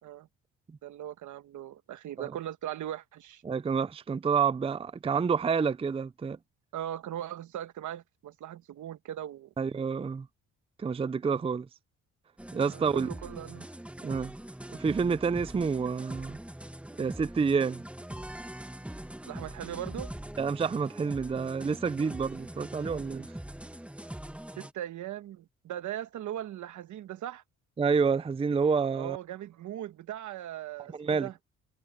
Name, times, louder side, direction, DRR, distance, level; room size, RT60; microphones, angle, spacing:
voice 1, 0.8-3.4 6.7-9.5 12.7-13.7 19.3-20.1 24.6-27.4 28.9-31.4, right 12 dB, 75° right, 1.4 m, -39 dB
voice 2, 3.4-6.4 9.6-10.3 10.8-11.7 12.5-13.1 14.0-14.3 14.7-16.4 17.0-17.8 20.4-23.3 27.8-29.2 30.9-31.3, right 5 dB, 20° right, 0.5 m, -28 dB
sound 1, 12.4-24.7, right 1 dB, 5° right, 1.5 m, -42 dB
cardioid pair, 90°, 30 cm